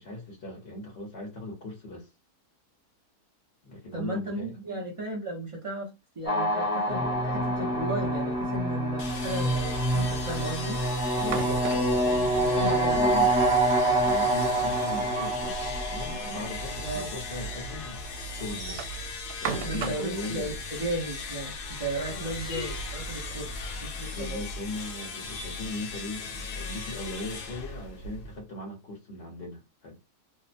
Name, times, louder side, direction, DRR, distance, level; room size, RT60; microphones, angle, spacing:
voice 1, 0.0-2.1 3.6-4.6 11.1-13.3 14.0-15.6 15.9-18.9 19.4-20.6 22.1-22.3 23.4-23.5 24.1-30.0, left 2 dB, 45° left, 1.0 m, -39 dB
voice 2, 3.9-5.9 6.2-10.8 12.2-13.0 16.9-17.1 19.6-23.5 23.8-24.4, right 1 dB, 55° right, 0.3 m, -35 dB
sound 1, 6.3-17.4, right 1 dB, 5° right, 0.6 m, -26 dB
sound 2, 9.0-28.4, left 3 dB, 75° left, 1.2 m, -37 dB
sound 3, 11.1-12.1 14.2-15.5 15.9-16.0 16.3-16.4 17.1-17.2 18.4-20.1, right 6 dB, 80° right, 1.1 m, -36 dB
2.7 x 2.1 x 2.5 m
omnidirectional pair, 1.7 m